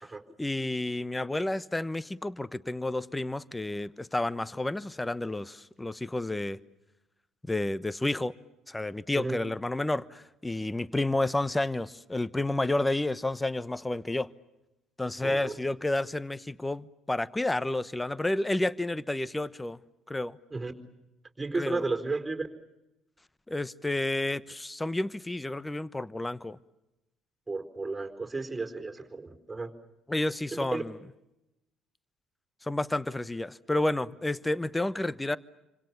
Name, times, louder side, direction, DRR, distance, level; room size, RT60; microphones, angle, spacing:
voice 1, 0.4-6.6 7.5-8.3 8.7-14.3 15.0-19.8 20.1-20.4 21.5-21.8 23.5-26.6 30.1-30.9 32.6-35.4, left 2 dB, 15° left, 1.0 m, -30 dB
voice 2, 15.2-15.5 20.5-20.7 21.4-22.5 27.5-29.7 30.7-30.8, right 3 dB, 15° right, 4.4 m, -33 dB
28.0 x 26.0 x 7.1 m
hypercardioid pair, 55°, 0 cm